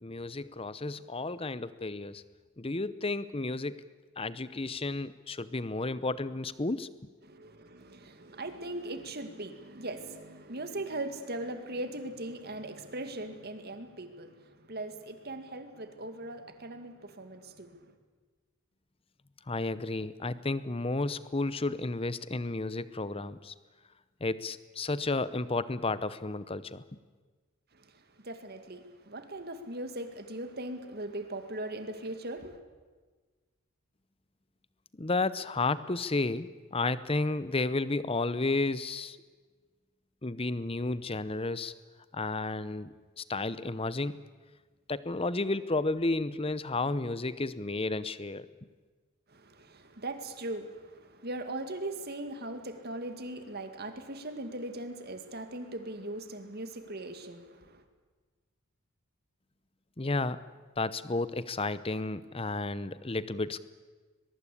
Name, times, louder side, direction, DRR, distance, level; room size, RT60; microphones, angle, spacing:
voice 1, 0.0-2.2 2.6-3.8 4.2-6.9 19.5-23.5 24.2-27.0 35.0-39.2 40.2-41.7 42.1-44.2 44.9-48.5 60.0-60.4 60.8-63.6, left 2 dB, 25° left, 16 dB, 0.8 m, -32 dB
voice 2, 7.2-17.9 27.7-32.6 49.3-57.8, right 1 dB, 45° right, 8 dB, 2.1 m, -40 dB
22.0 x 22.0 x 8.5 m, 1.4 s
head